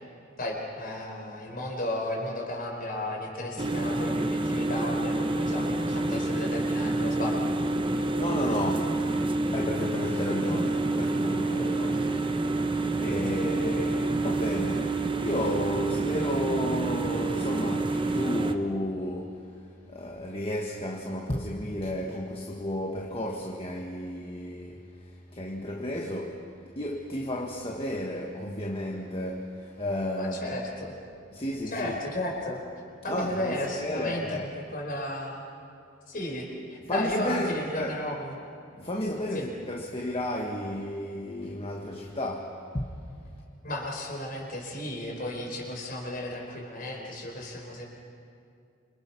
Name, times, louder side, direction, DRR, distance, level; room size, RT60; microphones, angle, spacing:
voice 1, 0.4-7.4 30.2-31.0 31.7-32.6 33.0-35.4 36.1-38.4 39.3-39.5 43.6-47.9, left 1 dB, 45° left, 4.9 m, -34 dB
sound 1, 3.6-18.5, right 2 dB, 25° right, 1.0 m, -28 dB
voice 2, 8.2-9.0 9.5-12.2 13.0-19.5 19.9-24.8 25.3-26.5 26.7-30.6 31.3-32.0 33.1-34.5 36.9-37.9 38.8-42.9, left 1 dB, 25° left, 1.5 m, -32 dB
27.5 x 27.0 x 5.9 m
head